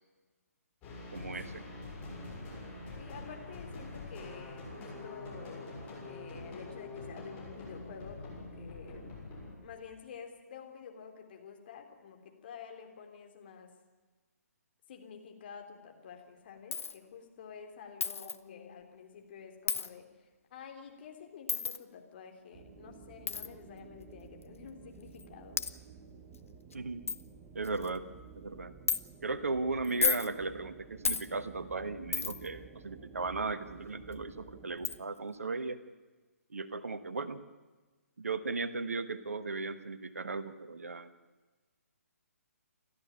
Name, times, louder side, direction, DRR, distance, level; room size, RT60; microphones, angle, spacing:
sound 1, 0.8-9.6, left 2 dB, 20° left, 7.1 m, -45 dB
voice 1, 1.1-1.7 26.7-27.0 27.5-28.0 28.4-28.7 29.2-35.8 36.5-37.4 38.2-41.1, right 3 dB, 60° right, 12 dB, 1.3 m, -36 dB
voice 2, 3.0-5.7 6.1-9.0 9.6-13.7 14.9-20.1 20.5-25.6, left 6 dB, 40° left, 3 dB, 3.4 m, -49 dB
Coin (dropping), 16.7-17.0 18.0-18.4 19.7-19.9 21.5-21.8 23.3-23.5 24.4-24.5 25.2-25.3 25.6-25.7 26.3-26.4 26.7-26.8 27.1-27.2 27.6-28.0 28.9-29.0 29.8-30.3 31.0-31.3 32.1-32.5 34.1-34.2 34.8-35.0, left 5 dB, 55° left, 1.1 m, -32 dB
sound 2, 22.5-35.0, right 5 dB, 25° right, 1.1 m, -53 dB
29.0 x 13.0 x 9.0 m, 1.3 s
figure-of-eight pair, 135°, 9 cm